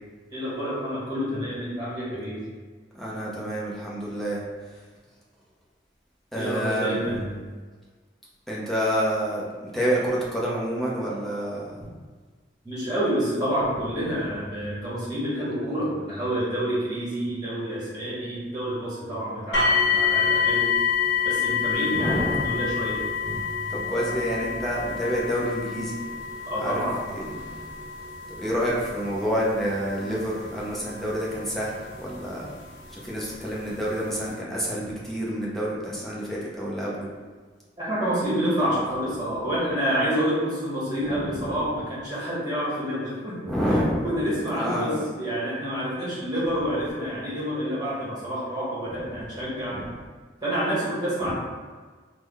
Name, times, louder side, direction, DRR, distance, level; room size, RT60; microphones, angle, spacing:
voice 1, 0.3-2.4 6.3-7.3 12.6-20.7 21.2-23.0 26.5-27.0 37.8-43.4 44.0-49.9 50.4-51.3, equal, 20° right, -8 dB, 1.3 m, -28 dB
voice 2, 2.9-4.4 6.3-7.2 8.5-11.7 21.6-22.6 23.7-25.9 26.6-26.7 27.1-27.3 28.4-32.5 32.9-37.1 41.0-41.5 43.5-44.0 44.5-45.0 49.7-49.9 51.2-51.3, equal, ahead, -6 dB, 0.6 m, -28 dB
sound 1, 19.5-32.4 33.3-33.4 33.9-34.0, left 6 dB, 80° left, 0.8 m, -27 dB
3.5 x 2.2 x 3.4 m, 1.4 s
head